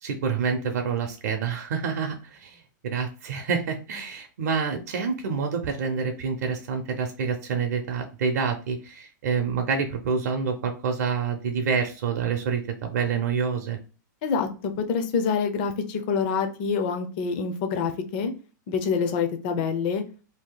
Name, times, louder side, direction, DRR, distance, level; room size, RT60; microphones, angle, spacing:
voice 1, 0.0-13.8, right 5 dB, 55° right, 4 dB, 0.6 m, -27 dB
voice 2, 14.2-18.3 18.7-20.0, left 5 dB, 30° left, 6 dB, 0.4 m, -26 dB
2.7 x 2.7 x 3.8 m, 0.35 s
supercardioid pair, 180°, 10 cm